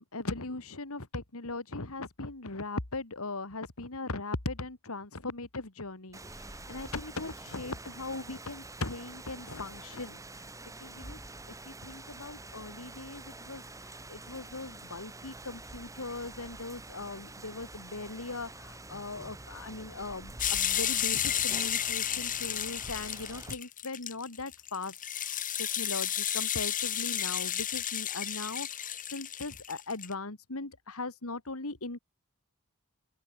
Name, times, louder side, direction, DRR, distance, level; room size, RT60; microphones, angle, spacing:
voice 1, 0.0-6.2 6.7-10.2 10.8-11.2 11.7-24.9 25.6-32.0, left 3 dB, 70° left, 2.4 m, -39 dB
Rain, 6.1-23.5, right 2 dB, 15° right, 1.8 m, -47 dB
sound 1, 20.4-30.1, left 10 dB, 35° left, 2.3 m, -32 dB
open air
head